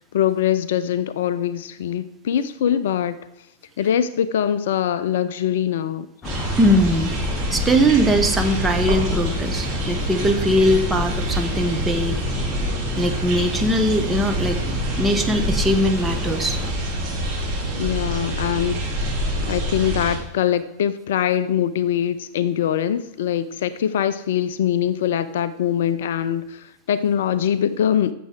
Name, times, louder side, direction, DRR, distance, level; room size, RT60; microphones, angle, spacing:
voice 1, 0.1-3.2 3.8-6.1 17.8-19.0 19.4-28.1, left 9 dB, 60° left, 15 dB, 0.4 m, -23 dB
sound 1, 6.2-16.7, left 2 dB, 20° left, 1.0 m, -31 dB
sound 2, 6.2-20.2, right 1 dB, 35° right, 2.8 m, -26 dB
voice 2, 6.6-7.2 7.5-12.2 13.0-16.6, equal, 10° right, 5 dB, 1.1 m, -20 dB
14.5 x 6.8 x 3.4 m, 0.89 s
figure-of-eight pair, 90°, 0 cm